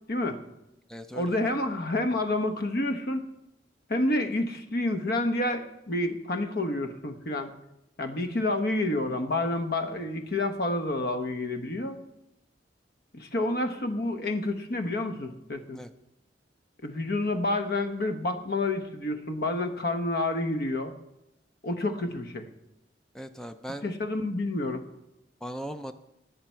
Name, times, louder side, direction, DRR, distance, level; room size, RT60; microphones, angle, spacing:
voice 1, 0.1-0.4 1.1-3.3 3.9-7.5 8.0-12.0 13.1-15.8 16.8-20.9 21.6-22.5 23.8-24.9, left 2 dB, 55° left, 6 dB, 1.1 m, -29 dB
voice 2, 0.9-1.4 15.7-15.9 23.1-23.9 25.4-25.9, equal, 5° left, 9 dB, 0.4 m, -39 dB
19.0 x 6.8 x 4.5 m, 0.90 s
head